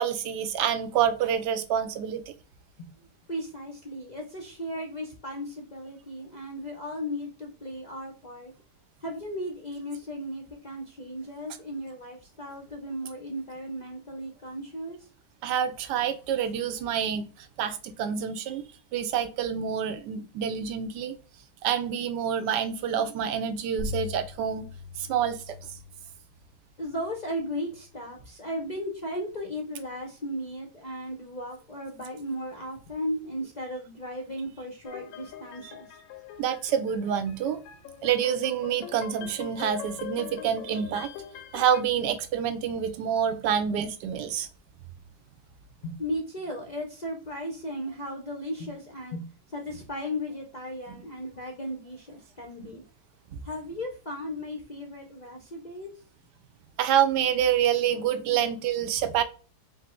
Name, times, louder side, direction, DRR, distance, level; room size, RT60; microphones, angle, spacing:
voice 1, 0.0-2.3 15.4-18.6 18.9-21.2 21.6-24.7 25.0-25.6 36.4-37.6 38.0-41.1 41.5-44.5 53.3-53.4 56.8-59.2, right 8 dB, 90° right, 1.2 m, -27 dB
voice 2, 3.3-8.5 9.0-15.1 26.8-35.9 45.8-49.2 49.5-52.8 53.4-55.9 58.3-58.5, equal, 55° left, 0.5 m, -36 dB
sound 1, 23.8-28.9, left 3 dB, 50° right, 0.6 m, -42 dB
sound 2, 34.8-41.8, left 11 dB, 70° left, 0.9 m, -43 dB
5.1 x 2.0 x 4.3 m
omnidirectional pair, 1.8 m